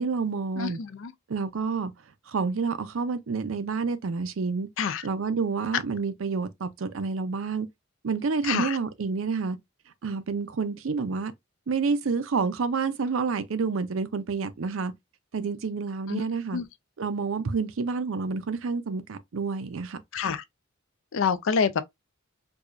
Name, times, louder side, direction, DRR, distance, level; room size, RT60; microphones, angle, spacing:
voice 1, 0.0-0.8 1.3-1.9 2.3-4.7 5.0-7.7 8.0-9.6 10.0-11.3 11.7-14.9 15.3-16.6 17.0-20.0, right 4 dB, 75° right, 0.5 m, -29 dB
voice 2, 0.6-1.1 4.8-5.0 8.4-8.8 16.1-16.2 16.5-16.6 20.1-20.4 21.1-21.8, left 6 dB, 65° left, 0.4 m, -27 dB
4.7 x 2.3 x 2.5 m
head